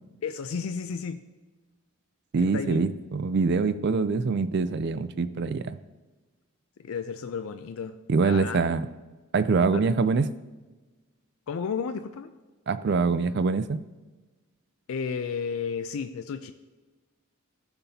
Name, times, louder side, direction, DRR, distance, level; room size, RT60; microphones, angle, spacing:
voice 1, 0.2-1.2 2.4-2.8 6.8-7.9 8.2-8.6 9.7-9.9 11.5-12.3 14.9-16.5, left 6 dB, 75° left, 9 dB, 0.4 m, -32 dB
voice 2, 2.3-5.8 8.1-8.9 9.3-10.3 12.7-13.8, right 4 dB, 50° right, 14 dB, 0.4 m, -24 dB
13.5 x 5.9 x 2.8 m, 1.2 s
head